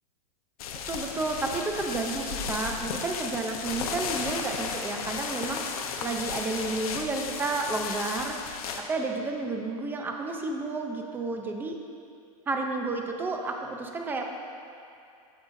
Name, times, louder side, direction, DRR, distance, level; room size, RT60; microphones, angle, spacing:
sound 1, 0.6-8.8, left 6 dB, 70° left, 0.9 m, -34 dB
voice 1, 0.9-5.7 6.0-8.4 8.8-11.8 12.5-14.2, right 3 dB, 10° right, 3 dB, 0.5 m, -31 dB
14.5 x 5.4 x 2.6 m, 2.6 s
supercardioid pair, 155°, 19 cm